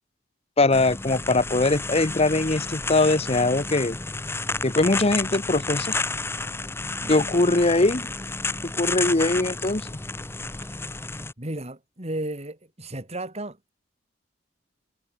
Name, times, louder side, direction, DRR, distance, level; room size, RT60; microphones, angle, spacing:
voice 1, 0.6-4.0 4.6-5.9 7.1-8.1 8.6-9.9, left 2 dB, 35° left, 1.2 m, -21 dB
sound 1, 0.7-11.3, left 3 dB, 15° left, 0.8 m, -31 dB
voice 2, 7.0-7.3 10.6-10.9 11.4-13.8, right 1 dB, 35° right, 4.5 m, -34 dB
head